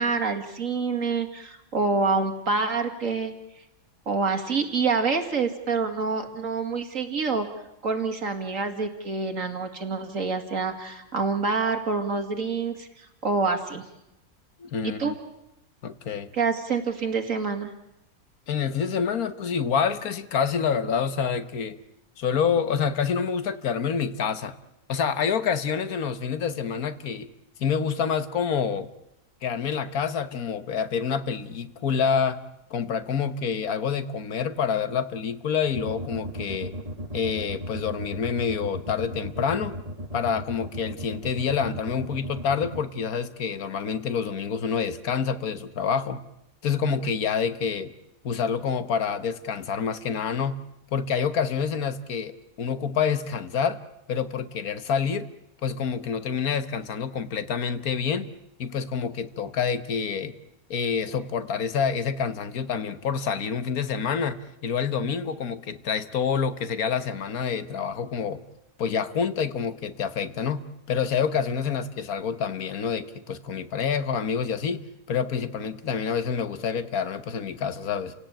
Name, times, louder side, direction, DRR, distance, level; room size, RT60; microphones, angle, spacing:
voice 1, 0.0-3.3 4.1-7.5 7.8-13.8 14.8-15.1 16.3-17.7, right 4 dB, 60° right, 5 dB, 2.7 m, -27 dB
voice 2, 14.6-15.1 15.8-16.3 18.5-21.8 22.2-24.5 24.9-27.3 27.6-28.9 29.4-32.4 32.7-36.7 37.1-39.8 40.1-46.2 46.6-47.9 48.2-50.6 50.9-53.8 54.1-55.3 55.6-58.3 58.6-60.3 60.7-68.4 68.8-78.1, left 6 dB, 75° left, 12 dB, 1.6 m, -27 dB
sound 1, 35.7-42.8, equal, 25° right, 1.8 m, -35 dB
29.5 x 17.5 x 8.9 m, 0.89 s
omnidirectional pair, 1.5 m